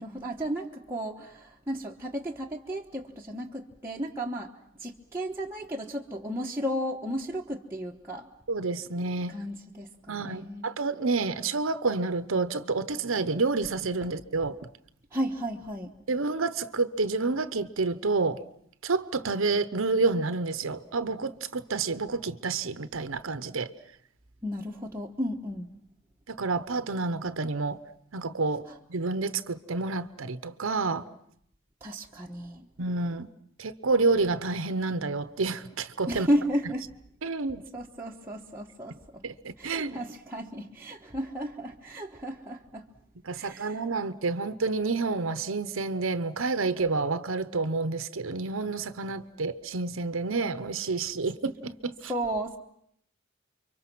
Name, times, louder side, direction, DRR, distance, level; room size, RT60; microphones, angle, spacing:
voice 1, 0.0-4.5 4.8-8.3 9.3-10.8 15.1-15.9 24.4-25.7 31.8-32.7 36.1-36.9 37.7-39.2 39.6-42.9 43.3-43.8 52.1-52.6, equal, 10° right, -3 dB, 1.2 m, -33 dB
voice 2, 8.5-9.3 10.1-14.6 16.1-18.4 18.8-23.7 26.3-27.8 28.1-28.6 28.9-31.0 32.8-33.3 33.6-36.3 37.2-37.6 39.2-40.0 43.2-52.1, right 3 dB, 70° right, 12 dB, 0.9 m, -29 dB
30.0 x 24.0 x 6.2 m, 0.69 s
head